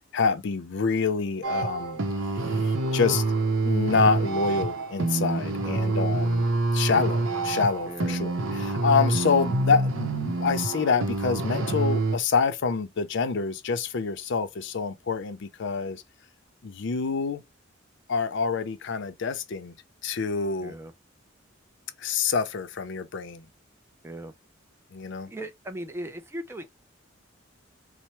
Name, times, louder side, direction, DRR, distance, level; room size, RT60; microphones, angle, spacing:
voice 1, 0.1-2.0 2.5-3.2 3.6-16.0 16.6-17.4 18.1-19.7 20.0-20.7 22.0-23.4 24.9-25.3, left 5 dB, 65° left, 0.5 m, -27 dB
sound 1, 1.4-12.2, right 2 dB, 80° right, 0.7 m, -27 dB
voice 2, 7.9-8.2 20.6-20.9 24.0-24.3 25.3-26.7, right 1 dB, 15° right, 0.4 m, -38 dB
4.3 x 2.0 x 3.0 m
head